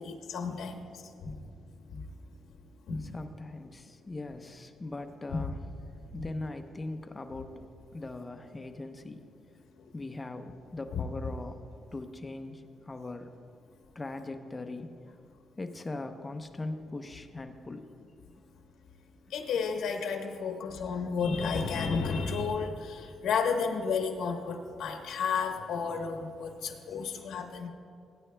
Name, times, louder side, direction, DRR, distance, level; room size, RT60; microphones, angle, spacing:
voice 1, 0.0-1.4 1.9-2.0 2.9-3.0 6.1-6.2 10.9-11.0 19.3-27.7, left 5 dB, 80° left, 3 dB, 1.1 m, -32 dB
voice 2, 3.0-5.6 6.0-7.5 7.9-9.2 9.9-11.6 11.9-13.3 13.9-15.0 15.6-17.8, left 2 dB, 20° left, 7 dB, 0.7 m, -40 dB
20.0 x 9.4 x 2.2 m, 2.4 s
cardioid pair, 105°, 0 cm